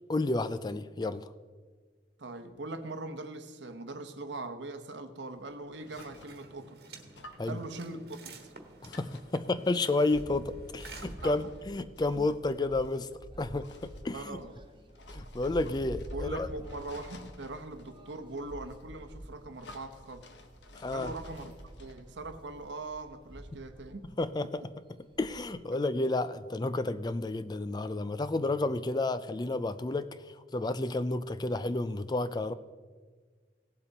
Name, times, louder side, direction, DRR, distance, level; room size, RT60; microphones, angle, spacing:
voice 1, 0.1-1.3 7.4-7.6 8.8-13.1 13.4-14.4 15.1-16.5 20.7-21.1 24.2-24.5 25.2-32.5, left 2 dB, 25° left, 13 dB, 0.4 m, -31 dB
voice 2, 2.2-6.8 7.4-8.5 9.3-9.4 12.2-12.3 14.1-14.6 16.1-20.3 20.9-21.5 21.8-24.1, right 2 dB, 90° right, 8 dB, 1.0 m, -41 dB
sound 1, 5.4-6.6 7.1-22.1, left 2 dB, 80° left, 1.0 m, -54 dB
sound 2, 5.8-11.9, right 3 dB, 60° right, 1.4 m, -52 dB
sound 3, 10.1-24.3 24.6-24.7 24.9-25.6, right 1 dB, 25° right, 0.9 m, -47 dB
17.5 x 7.5 x 4.0 m, 1.5 s
head